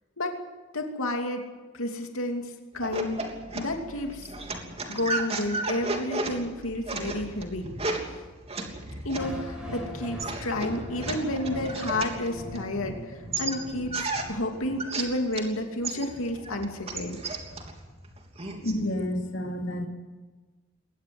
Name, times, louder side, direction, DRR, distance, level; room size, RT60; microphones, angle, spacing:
voice 1, 0.7-1.4 1.7-3.2 3.5-4.3 4.9-7.7 9.0-14.0 14.3-17.2, left 1 dB, 90° left, 3 dB, 2.8 m, -31 dB
sound 1, 2.8-12.9 13.3-15.5 15.8-18.8, right 3 dB, 30° right, 3.1 m, -34 dB
sound 2, 9.1-15.2, equal, 5° right, 6.4 m, -40 dB
voice 2, 18.5-19.9, left 1 dB, 65° left, 3 dB, 2.9 m, -30 dB
22.5 x 18.5 x 7.9 m, 1.3 s
head